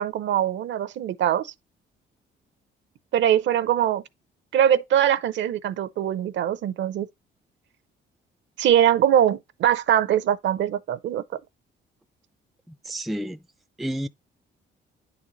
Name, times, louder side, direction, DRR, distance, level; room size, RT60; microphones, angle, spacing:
voice 1, 0.0-1.5 3.1-4.0 4.5-7.1 8.6-11.2, right 10 dB, 70° right, 0.6 m, -22 dB
voice 2, 12.7-13.4 13.8-14.1, right 1 dB, ahead, 0.3 m, -30 dB
9.5 x 4.0 x 3.0 m
cardioid pair, 90°, 20 cm